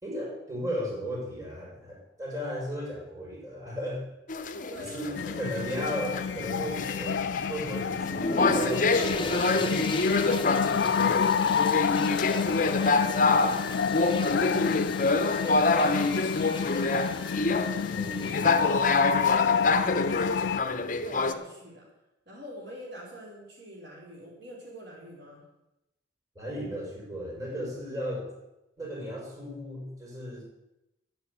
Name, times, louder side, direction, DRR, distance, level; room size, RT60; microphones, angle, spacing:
voice 1, 0.0-4.1 4.8-10.0 17.9-18.5 26.4-28.3 28.8-30.4, equal, 20° right, -4 dB, 5.4 m, -35 dB
sound 1, 4.3-21.3, left 3 dB, 45° left, 1.0 m, -27 dB
voice 2, 4.5-5.8 8.5-14.9 15.2-17.8 18.5-19.9 20.3-20.5 21.0-21.9 22.3-25.4, equal, 65° right, -3 dB, 4.8 m, -44 dB
sound 2, 5.2-20.6, left 7 dB, 65° left, 0.4 m, -29 dB
sound 3, 8.0-19.0, left 3 dB, 25° left, 1.2 m, -37 dB
12.5 x 8.4 x 8.3 m, 0.92 s
head